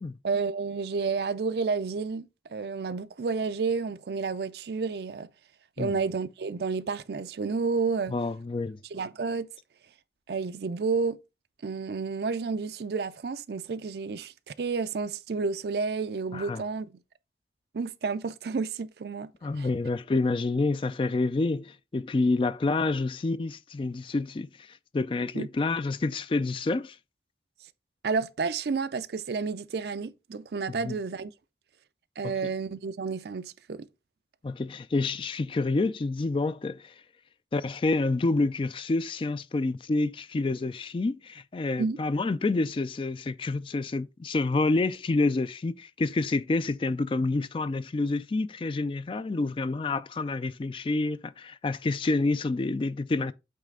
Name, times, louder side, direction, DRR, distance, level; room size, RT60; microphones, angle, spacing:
voice 1, 0.2-5.3 5.8-8.1 8.9-9.5 10.3-11.2 11.6-16.9 17.7-19.3 19.6-19.7 25.3-25.5 28.0-31.3 32.2-33.9 41.8-42.0, right 4 dB, 65° right, 0.4 m, -30 dB
voice 2, 8.1-8.8 16.3-16.6 19.4-27.0 30.7-31.0 32.2-32.3 34.4-36.9 37.5-53.3, left 3 dB, 30° left, 0.3 m, -28 dB
8.4 x 3.2 x 3.7 m
head